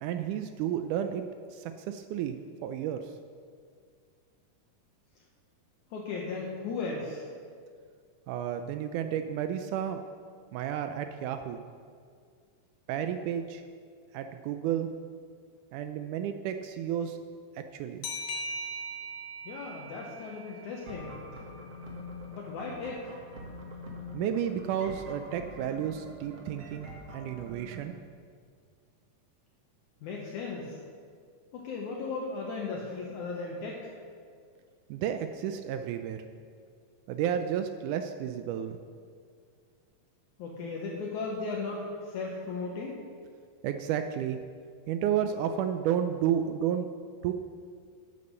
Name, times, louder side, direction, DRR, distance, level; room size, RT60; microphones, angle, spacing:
voice 1, 0.0-2.4 2.6-3.1 8.3-10.0 10.5-11.6 12.9-13.6 14.1-14.9 15.7-17.2 17.6-18.1 24.1-27.9 34.9-36.2 37.1-38.8 43.6-44.4 44.9-46.9 47.2-47.3, right 9 dB, 80° right, 8 dB, 2.0 m, -32 dB
voice 2, 5.9-7.2 19.5-21.1 22.3-23.1 30.0-30.8 31.5-33.9 40.4-43.0, left 4 dB, 70° left, -2 dB, 2.4 m, -36 dB
sound 1, 18.0-21.4, equal, 90° left, 3.1 m, -40 dB
sound 2, 20.9-27.8, left 1 dB, 50° right, 2.4 m, -44 dB
11.0 x 8.4 x 6.7 m, 2.1 s
omnidirectional pair, 3.7 m